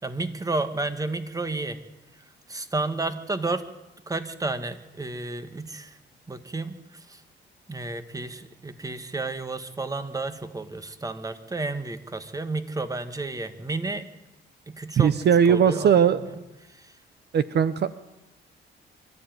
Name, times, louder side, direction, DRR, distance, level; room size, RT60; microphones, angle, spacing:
voice 1, 0.0-1.8 2.1-3.7 4.1-6.0 6.3-7.2 7.7-14.1 14.7-15.2 15.5-17.0, right 2 dB, 15° right, 10 dB, 1.9 m, -32 dB
voice 2, 15.0-16.2 17.3-17.9, right 8 dB, 55° right, 14 dB, 0.9 m, -19 dB
24.0 x 14.0 x 9.4 m, 0.99 s
cardioid pair, 90°, 20 cm